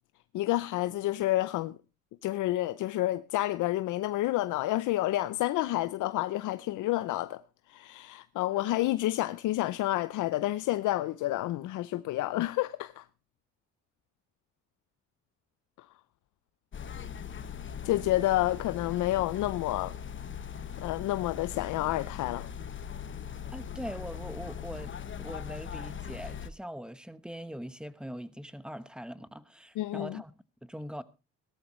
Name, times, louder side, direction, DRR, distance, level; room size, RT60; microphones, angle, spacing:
voice 1, 0.3-1.8 2.2-7.4 7.7-13.0 17.8-19.9 20.8-22.5 29.8-30.2, left 16 dB, 85° left, 0.6 m, -29 dB
sound 1, 16.7-26.5, left 8 dB, 40° left, 1.0 m, -40 dB
voice 2, 23.5-30.3 30.6-31.0, equal, 5° right, 1.0 m, -42 dB
17.0 x 13.5 x 3.1 m
cardioid pair, 90°, 30 cm